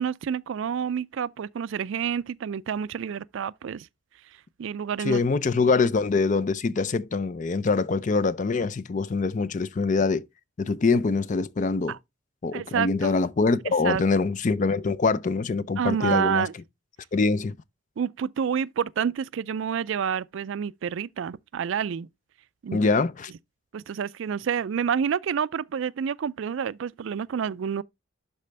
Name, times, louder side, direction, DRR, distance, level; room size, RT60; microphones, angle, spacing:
voice 1, 0.0-3.9 4.6-5.2 11.9-12.0 12.5-13.2 13.8-14.0 15.8-16.5 18.0-22.1 22.6-22.8 23.7-27.8, right 7 dB, 65° right, 0.3 m, -28 dB
voice 2, 5.0-10.3 10.6-12.0 12.4-16.5 17.1-17.5 22.7-23.3, left 4 dB, 35° left, 0.4 m, -24 dB
11.5 x 4.2 x 3.2 m
head